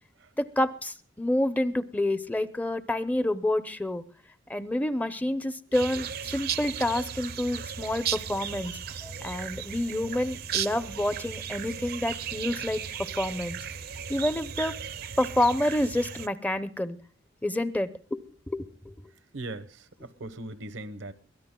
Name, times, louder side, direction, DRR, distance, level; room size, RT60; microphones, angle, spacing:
voice 1, 0.4-4.0 4.5-13.6 14.1-14.7 15.2-17.0 17.4-18.9, left 1 dB, 10° left, 0.6 m, -28 dB
sound 1, 5.7-16.3, right 8 dB, 55° right, 0.6 m, -36 dB
voice 2, 19.3-21.1, right 2 dB, 85° right, 1.0 m, -39 dB
23.0 x 17.0 x 2.2 m
head